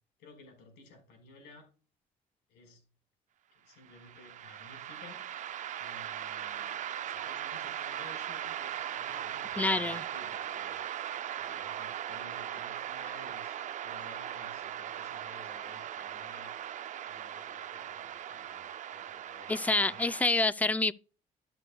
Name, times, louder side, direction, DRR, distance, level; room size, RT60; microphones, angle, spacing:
voice 1, 0.2-1.7 2.5-2.8 3.5-5.2 5.8-6.8 7.0-10.9 11.4-16.5 17.1-20.3, left 3 dB, 85° left, 4.6 m, -54 dB
sound 1, 3.9-20.3, right 10 dB, 45° right, 0.5 m, -39 dB
voice 2, 9.6-10.0 19.5-20.9, left 2 dB, 10° left, 0.4 m, -27 dB
12.5 x 6.6 x 2.3 m
cardioid pair, 110°, 17 cm